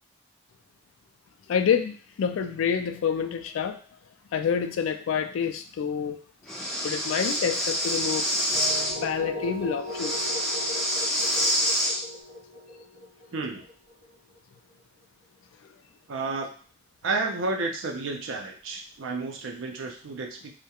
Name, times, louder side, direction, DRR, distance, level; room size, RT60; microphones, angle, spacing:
voice 1, 1.5-3.8 4.3-6.2 6.8-8.3 9.0-10.4, left 7 dB, 85° left, 8 dB, 0.3 m, -27 dB
Breathing, 6.5-8.9 9.9-12.0, equal, ahead, 0.3 m, -27 dB
sound 1, 8.5-14.4, left 1 dB, 40° right, 0.9 m, -38 dB
voice 2, 13.3-13.6 16.1-16.5 17.0-20.5, right 3 dB, 80° right, 2 dB, 0.5 m, -31 dB
2.3 x 2.1 x 2.8 m, 0.41 s
head